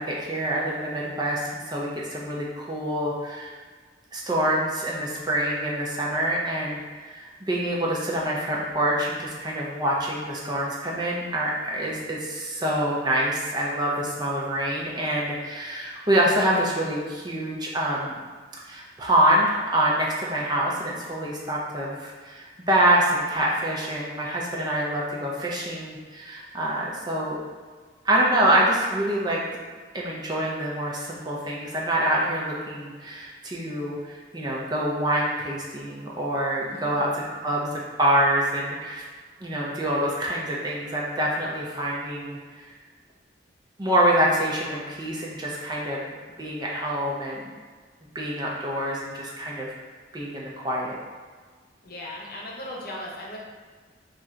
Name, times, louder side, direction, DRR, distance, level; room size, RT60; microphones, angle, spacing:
voice 1, 0.0-3.5 4.1-18.2 18.7-27.4 28.0-29.4 29.9-37.1 37.4-39.0 39.4-42.4 43.8-47.5 48.1-49.7 50.1-51.0, right 1 dB, 25° right, -4 dB, 0.6 m, -26 dB
voice 2, 36.6-37.0 51.8-53.4, left 1 dB, 55° left, -4 dB, 0.9 m, -37 dB
3.6 x 2.5 x 4.3 m, 1.5 s
head